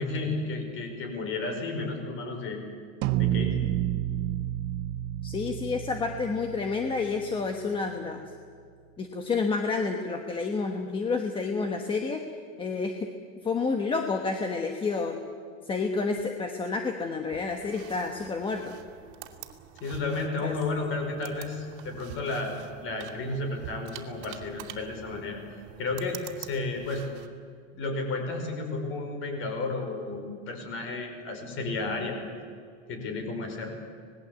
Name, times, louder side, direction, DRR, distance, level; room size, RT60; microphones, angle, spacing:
voice 1, 0.0-2.6 3.1-3.8 19.4-19.5 19.8-25.4 25.8-27.1 27.7-32.2 32.9-33.7, left 3 dB, 30° left, 4 dB, 5.4 m, -32 dB
sound 1, 3.0-7.6, right 13 dB, 35° right, 1.0 m, -30 dB
voice 2, 5.2-8.2 9.0-12.2 12.6-13.1 13.4-15.2 15.7-18.7 20.4-20.5, left 4 dB, 15° left, 4 dB, 1.2 m, -29 dB
sound 2, 17.3-27.3, right 11 dB, 60° right, 2.7 m, -47 dB
26.0 x 20.0 x 8.3 m, 2.2 s
supercardioid pair, 170°, 38 cm